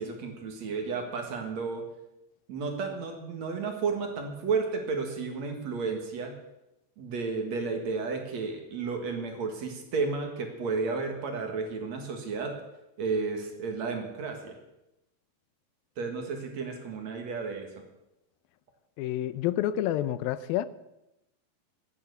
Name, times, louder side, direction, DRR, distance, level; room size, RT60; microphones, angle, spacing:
voice 1, 0.0-1.8 2.5-6.3 7.0-12.6 13.0-14.6 16.0-17.7, right 4 dB, 55° right, 4 dB, 2.8 m, -32 dB
voice 2, 19.0-20.7, left 12 dB, 90° left, 15 dB, 2.5 m, -28 dB
16.0 x 9.1 x 6.9 m, 0.91 s
omnidirectional pair, 4.1 m